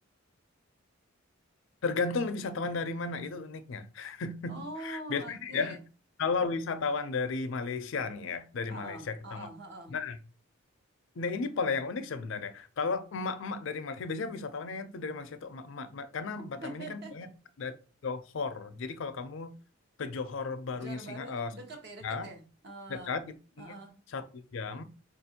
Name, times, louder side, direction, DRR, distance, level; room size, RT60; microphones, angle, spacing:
voice 1, 1.8-5.8 6.2-9.5 9.9-10.2 11.2-17.3 17.6-17.7 18.0-19.5 20.0-21.5 22.0-22.3 22.9-23.7 24.1-24.2 24.5-24.8, left 4 dB, 65° left, 0.4 m, -34 dB
voice 2, 4.5-5.8 8.7-9.9 16.6-17.2 20.7-23.2 23.6-23.9, right 1 dB, 55° right, 0.9 m, -44 dB
4.8 x 2.5 x 2.8 m
head